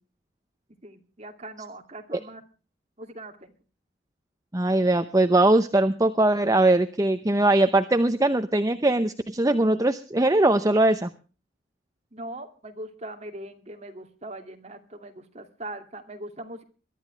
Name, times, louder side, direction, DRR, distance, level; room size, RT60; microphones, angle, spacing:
voice 1, 0.8-2.4 3.0-3.5 12.1-16.6, right 1 dB, 35° right, 5 dB, 2.5 m, -40 dB
voice 2, 4.5-11.1, right 2 dB, 20° right, 10 dB, 0.7 m, -21 dB
22.5 x 12.5 x 3.3 m, 0.36 s
head